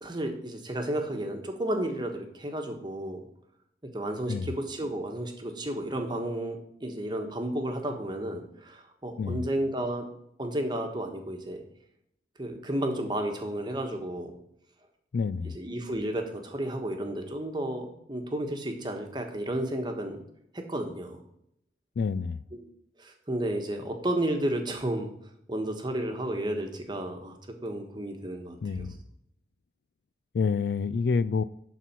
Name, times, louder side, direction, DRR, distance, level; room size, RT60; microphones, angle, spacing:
voice 1, 0.0-3.2 3.9-10.1 10.4-11.6 12.4-14.3 15.4-20.2 20.5-21.2 22.5-22.6 23.0-25.1 25.5-27.4 27.6-29.0, right 1 dB, 25° right, 1.2 m, -32 dB
voice 2, 15.1-15.5 22.0-22.4 28.6-28.9 30.3-31.4, left 5 dB, 60° left, 0.3 m, -28 dB
11.5 x 4.2 x 6.0 m
head